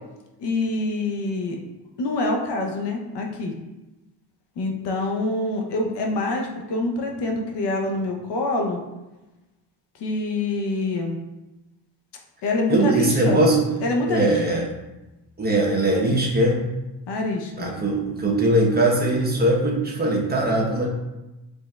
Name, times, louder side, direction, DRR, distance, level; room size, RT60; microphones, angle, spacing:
voice 1, 0.4-1.6 2.0-3.5 4.6-8.8 10.0-11.2 12.4-13.4 13.8-14.6 17.1-17.7, left 2 dB, 65° left, 1 dB, 0.8 m, -26 dB
voice 2, 12.7-13.7 14.1-14.7 15.4-16.6 17.6-20.9, right 1 dB, 20° right, -2 dB, 1.0 m, -20 dB
5.0 x 3.6 x 2.3 m, 1.0 s
cardioid pair, 95°, 44 cm